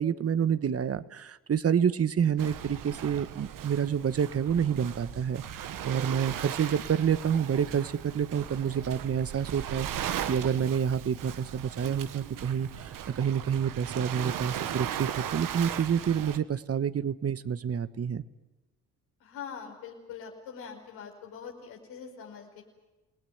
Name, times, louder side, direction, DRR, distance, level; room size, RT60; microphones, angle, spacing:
voice 1, 0.0-18.2, right 8 dB, 45° right, 14 dB, 1.2 m, -28 dB
Waves surf, 2.4-16.4, right 10 dB, 70° right, 1.3 m, -38 dB
voice 2, 19.2-22.6, left 7 dB, 85° left, 0 dB, 4.9 m, -43 dB
28.5 x 18.5 x 9.4 m, 1.1 s
supercardioid pair, 65°, 34 cm